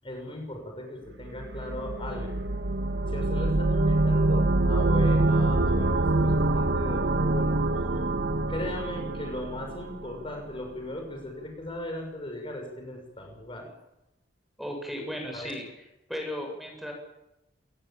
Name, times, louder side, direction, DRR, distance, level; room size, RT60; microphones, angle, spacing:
voice 1, 0.0-2.5 3.1-7.5 8.5-13.7 15.3-15.5, left 1 dB, 30° left, 3 dB, 6.7 m, -38 dB
sound 1, 1.4-10.2, right 2 dB, 90° right, 1.6 m, -25 dB
voice 2, 14.6-15.6 16.1-16.9, equal, ahead, 2 dB, 7.8 m, -35 dB
27.5 x 21.0 x 8.9 m, 0.89 s
head